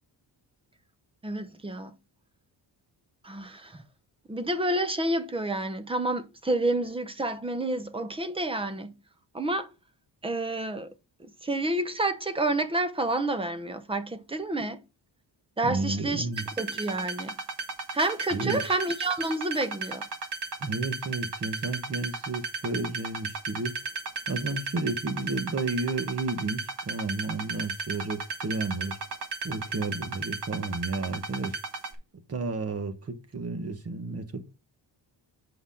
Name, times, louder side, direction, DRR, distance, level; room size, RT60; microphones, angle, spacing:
voice 1, 1.2-1.9 3.2-3.8 4.3-8.9 9.3-9.7 10.2-10.9 11.2-14.8 15.6-16.3 16.6-17.4 17.9-20.1, right 2 dB, 15° right, 0.7 m, -29 dB
voice 2, 15.6-16.4 18.3-18.6 20.6-23.9 24.3-29.0 29.4-31.6 32.3-34.4, right 3 dB, 35° right, 1.3 m, -32 dB
sound 1, 16.3-31.9, right 4 dB, 65° right, 1.7 m, -35 dB
8.0 x 6.0 x 3.7 m
wide cardioid pair, 175°, 43 cm